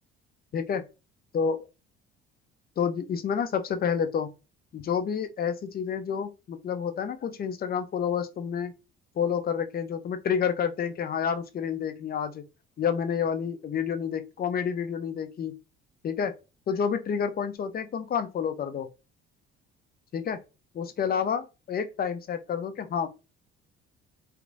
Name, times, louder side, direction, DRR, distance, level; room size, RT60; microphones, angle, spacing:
voice 1, 0.5-0.8 1.3-1.6 2.8-4.3 4.7-8.7 9.2-12.4 12.8-15.5 16.0-16.3 16.7-18.9 20.1-20.4 20.7-23.1, left 7 dB, 30° left, 0.4 m, -29 dB
2.9 x 2.0 x 2.5 m
hypercardioid pair, 55°, 32 cm